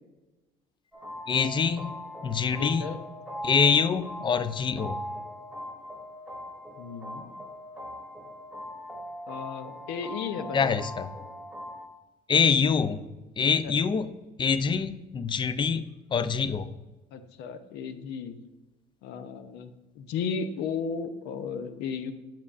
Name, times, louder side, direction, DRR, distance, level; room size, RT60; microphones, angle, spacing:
sound 1, 0.9-11.9, equal, ahead, 1.1 m, -40 dB
voice 1, 1.3-2.0 2.2-2.9 3.4-5.0 10.5-11.1 12.3-13.0 13.4-14.1 14.4-16.7, left 6 dB, 30° left, 12 dB, 0.4 m, -25 dB
voice 2, 2.6-3.0 6.8-7.4 9.3-10.8 13.6-13.7 17.1-18.4 19.0-19.7 20.0-22.1, left 6 dB, 90° left, 9 dB, 0.6 m, -34 dB
7.5 x 7.0 x 2.4 m, 1.1 s
cardioid pair, 110°, 17 cm